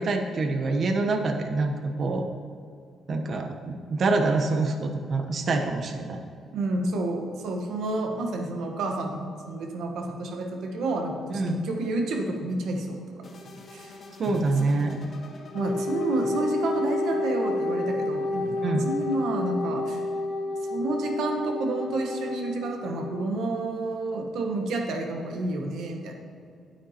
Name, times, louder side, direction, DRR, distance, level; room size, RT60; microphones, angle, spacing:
voice 1, 0.0-2.3 3.1-6.2 11.3-11.6 14.2-15.0 18.6-18.9, right 3 dB, 50° right, 5 dB, 0.9 m, -26 dB
voice 2, 6.5-13.3 13.7-13.9 14.4-14.9 15.5-18.6 18.8-20.0 20.7-26.2, right 2 dB, 75° right, 3 dB, 1.2 m, -30 dB
sound 1, 13.2-19.2, left 2 dB, 45° left, 1.4 m, -47 dB
Wind instrument woodwind instrument, 15.5-23.3, left 2 dB, 80° left, 1.0 m, -30 dB
9.1 x 9.0 x 2.9 m, 2.4 s
cardioid pair, 90°, 0 cm